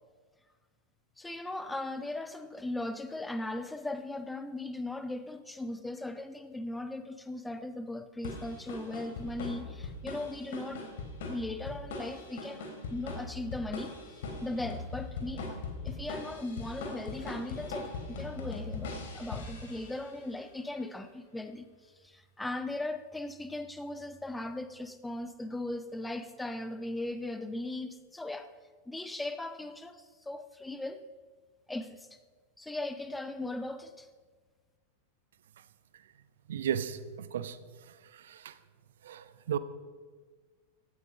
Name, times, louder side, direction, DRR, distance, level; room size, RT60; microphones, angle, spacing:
voice 1, 1.2-10.8 11.2-13.9 14.4-15.6 15.8-21.7 22.0-28.5 28.9-31.0 31.7-32.2 32.6-34.1, left 2 dB, 5° left, 9 dB, 1.1 m, -38 dB
sound 1, 8.2-20.2, left 3 dB, 55° left, 3.4 m, -40 dB
voice 2, 36.5-37.6 37.9-38.6 39.0-39.6, right 9 dB, 60° right, 14 dB, 0.9 m, -35 dB
17.0 x 13.0 x 5.2 m, 1.5 s
figure-of-eight pair, 90°, 0 cm